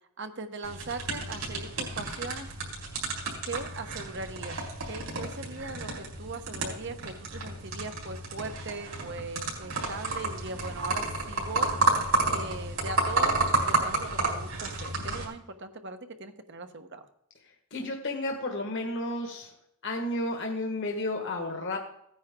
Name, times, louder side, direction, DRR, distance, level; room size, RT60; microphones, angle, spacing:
voice 1, 0.2-2.6 3.4-4.6 4.8-11.7 12.3-13.4 13.7-17.0, right 3 dB, 55° right, 8 dB, 1.1 m, -39 dB
sound 1, 0.6-15.2, right 3 dB, 70° right, 3.9 m, -31 dB
voice 2, 17.7-19.5 19.8-21.8, left 1 dB, 55° left, 1 dB, 1.6 m, -32 dB
16.5 x 9.6 x 3.7 m, 0.76 s
head